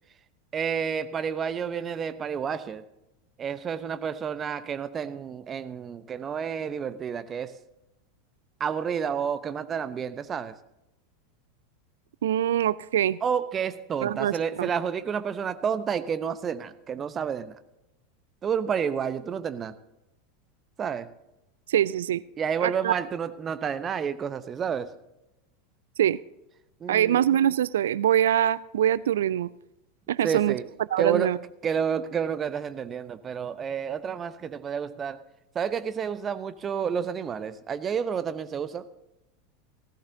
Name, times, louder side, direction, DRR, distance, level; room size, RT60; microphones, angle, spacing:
voice 1, 0.5-2.8 3.4-7.5 8.6-10.6 13.2-17.5 18.4-19.7 20.8-21.1 22.4-24.9 26.8-27.2 30.2-30.7 31.0-35.2 35.5-38.9, right 7 dB, 30° right, 13 dB, 0.8 m, -30 dB
voice 2, 12.2-13.2 14.0-14.7 21.7-22.2 22.6-23.0 26.0-26.2 26.9-29.5 30.1-30.6 30.9-31.4, right 11 dB, 70° right, 21 dB, 0.3 m, -24 dB
16.5 x 14.5 x 2.7 m, 0.89 s
figure-of-eight pair, 85°, 0 cm